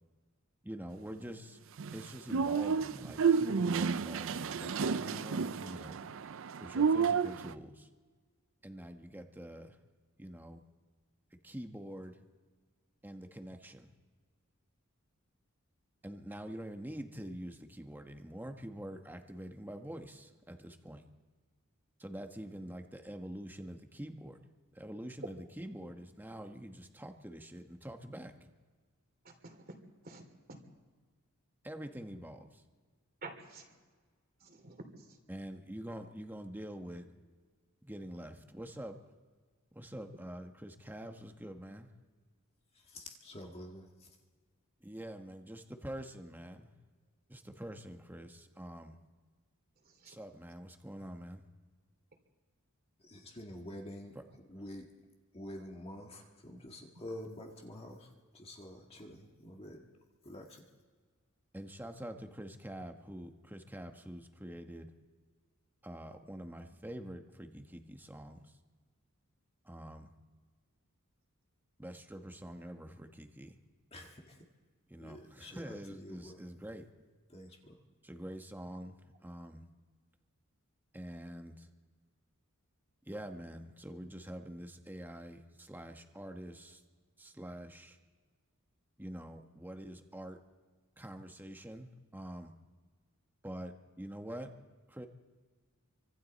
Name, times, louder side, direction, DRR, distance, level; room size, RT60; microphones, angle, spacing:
voice 1, 0.6-1.6 1.9-6.0 6.6-7.9 8.6-9.8 10.2-10.6 11.4-12.2 13.0-13.9 16.0-21.0 22.0-24.4 24.7-28.5 31.6-32.6 35.3-37.1 37.8-39.0 39.7-41.9 44.8-46.7 47.3-49.0 50.1-51.4 61.5-64.9 65.8-68.4 69.6-70.1 71.8-73.5 74.9-76.9 78.0-79.6 80.9-81.7 83.1-86.8 87.2-88.0 89.0-90.4 91.0-92.5 93.4-94.5 94.9-95.1, equal, 10° right, 5 dB, 1.3 m, -46 dB
sound 1, 1.8-7.5, right 6 dB, 60° right, 0.5 m, -31 dB
voice 2, 29.2-29.7 30.0-30.2 33.2-33.6 34.4-34.8 50.0-50.1, right 3 dB, 45° right, 5 dB, 2.9 m, -48 dB
voice 3, 42.7-44.2 53.0-54.1 54.5-54.9 55.3-59.8 60.2-60.6 73.9-74.5 75.0-76.4 77.3-77.8, left 1 dB, 30° left, 1 dB, 1.8 m, -48 dB
28.5 x 25.0 x 4.2 m, 1.5 s
head